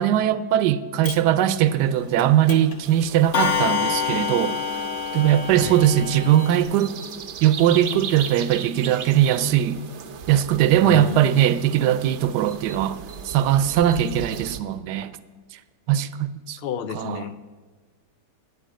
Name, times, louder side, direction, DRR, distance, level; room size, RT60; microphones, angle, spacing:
voice 1, 0.0-4.6 5.1-7.0 7.4-9.8 10.3-15.2 15.9-16.6 16.9-17.2, right 11 dB, 75° right, 1.2 m, -20 dB
Clock, 1.0-1.1 2.2-2.3 2.5-2.8 3.3-6.6, left 7 dB, 50° left, 1.2 m, -26 dB
sound 1, 2.8-14.6, right 7 dB, 60° right, 0.7 m, -38 dB
voice 2, 5.5-5.9 10.8-11.2 16.6-17.5, left 8 dB, 80° left, 0.5 m, -31 dB
9.5 x 8.2 x 7.7 m
omnidirectional pair, 1.8 m